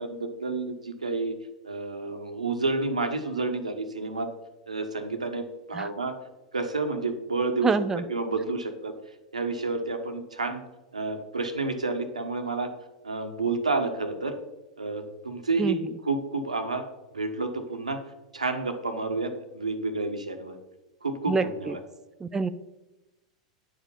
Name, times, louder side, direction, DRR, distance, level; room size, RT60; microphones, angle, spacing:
voice 1, 0.0-1.3 1.6-4.3 4.7-6.2 6.5-7.7 8.1-8.9 9.3-10.6 10.9-12.7 13.0-14.3 14.8-15.8 16.0-16.8 17.1-18.0 18.3-20.6 21.0-21.8, right 3 dB, 85° right, 7 dB, 1.1 m, -30 dB
voice 2, 7.6-8.0 15.6-15.8 21.3-21.7 22.2-22.5, right 4 dB, 15° right, 11 dB, 0.4 m, -26 dB
9.8 x 5.0 x 5.5 m, 0.99 s
figure-of-eight pair, 95°, 4 cm